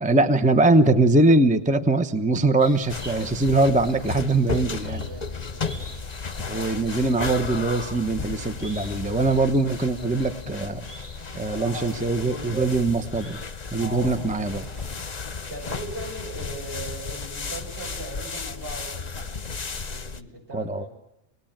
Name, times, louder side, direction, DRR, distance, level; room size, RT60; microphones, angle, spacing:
voice 1, 0.0-5.0 6.5-10.9 11.3-13.4 13.7-14.7 20.5-20.9, right 2 dB, 5° right, 9 dB, 0.9 m, -22 dB
sound 1, 2.6-14.3 14.5-14.6, equal, 25° right, 3.6 m, -48 dB
sound 2, 2.9-20.2, left 5 dB, 40° left, 1.1 m, -34 dB
voice 2, 4.5-5.9 11.3-12.8 13.8-14.2 15.5-19.5 19.9-20.9, right 1 dB, 60° right, -1 dB, 8.4 m, -39 dB
sound 3, 10.9-15.3, right 1 dB, 75° right, 7.9 m, -52 dB
26.0 x 19.5 x 8.9 m, 0.88 s
omnidirectional pair, 1.1 m